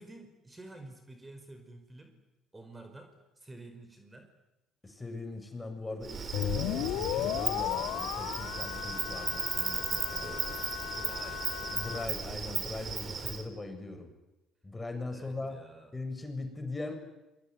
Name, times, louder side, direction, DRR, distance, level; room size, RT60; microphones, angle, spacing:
voice 1, 0.0-2.1 2.5-4.3 10.8-11.5 15.1-15.9, right 2 dB, 20° right, 6 dB, 5.5 m, -50 dB
voice 2, 4.8-10.3 11.7-14.1 14.6-15.6 15.9-16.9, left 2 dB, 20° left, 6 dB, 7.2 m, -40 dB
Insect, 6.0-13.4, right 6 dB, 45° right, 3.9 m, -36 dB
sound 1, 6.3-12.1, left 12 dB, 70° left, 1.9 m, -35 dB
27.0 x 22.0 x 9.8 m, 1.0 s
hypercardioid pair, 60°, 0 cm